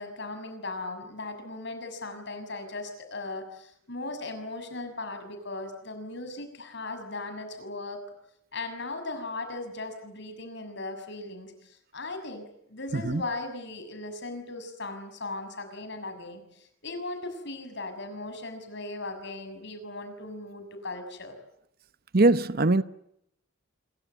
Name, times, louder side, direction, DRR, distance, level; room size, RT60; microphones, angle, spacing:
voice 1, 0.0-8.0 8.5-21.4, left 2 dB, 60° left, 6.7 m, -38 dB
voice 2, 22.1-22.8, right 2 dB, 50° right, 0.9 m, -21 dB
27.0 x 23.5 x 8.1 m
head